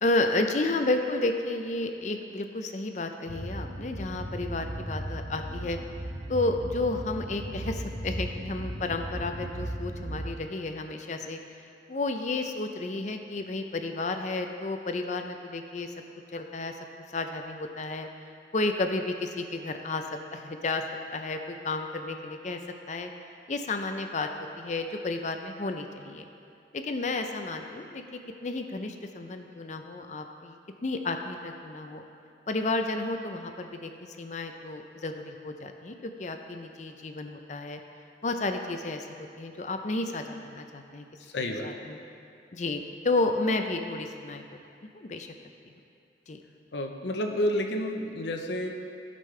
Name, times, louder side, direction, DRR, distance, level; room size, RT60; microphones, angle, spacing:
voice 1, 0.0-5.8 6.3-11.4 11.9-15.9 16.3-16.9 17.1-18.1 18.5-20.0 20.3-20.8 21.1-22.6 22.9-23.1 23.5-24.3 24.6-26.3 26.7-30.6 30.8-32.0 32.5-37.8 38.2-41.1 41.6-42.0 42.5-44.4 44.9-45.3 46.3-46.4, left 2 dB, 40° left, 6 dB, 0.5 m, -31 dB
sound 1, 3.3-10.3, right 1 dB, 40° right, 1.0 m, -36 dB
voice 2, 41.3-41.7 46.7-48.7, left 1 dB, 85° left, 3 dB, 0.7 m, -30 dB
15.5 x 5.3 x 3.3 m, 2.6 s
head